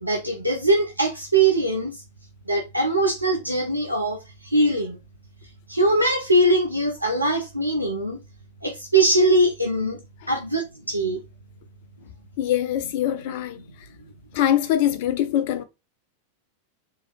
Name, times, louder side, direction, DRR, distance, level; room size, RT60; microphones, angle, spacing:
voice 1, 0.0-2.0 2.5-5.0 5.7-8.2 8.6-10.0 10.3-10.6 10.9-11.2, right 2 dB, 85° right, 0.6 m, -21 dB
voice 2, 12.4-13.9 14.3-15.6, left 11 dB, 50° left, 0.3 m, -23 dB
3.7 x 2.9 x 3.0 m
figure-of-eight pair, 90°, 0 cm